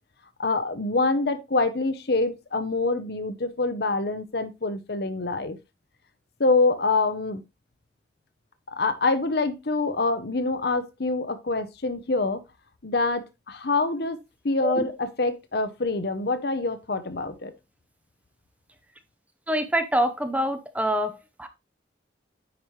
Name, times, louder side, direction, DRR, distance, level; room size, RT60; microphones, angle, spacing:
voice 1, 0.4-5.6 6.4-7.4 8.7-12.4 12.8-14.2 14.4-17.5, left 3 dB, 60° left, 0.9 m, -25 dB
voice 2, 19.5-21.5, equal, 10° right, 0.7 m, -26 dB
9.7 x 5.3 x 3.2 m
head